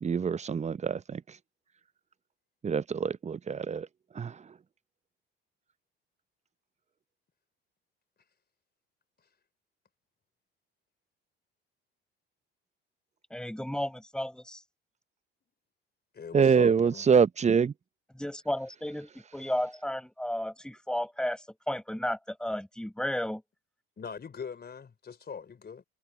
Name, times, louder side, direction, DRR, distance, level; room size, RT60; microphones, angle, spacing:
voice 1, 0.0-1.2 2.6-3.9 4.2-4.3 16.3-17.7, right 6 dB, 25° right, 0.8 m, -25 dB
voice 2, 13.3-14.6 18.1-23.4, left 1 dB, 5° left, 5.5 m, -33 dB
voice 3, 16.1-17.1 24.0-25.8, left 6 dB, 35° left, 3.9 m, -41 dB
hypercardioid pair, 65°, 29 cm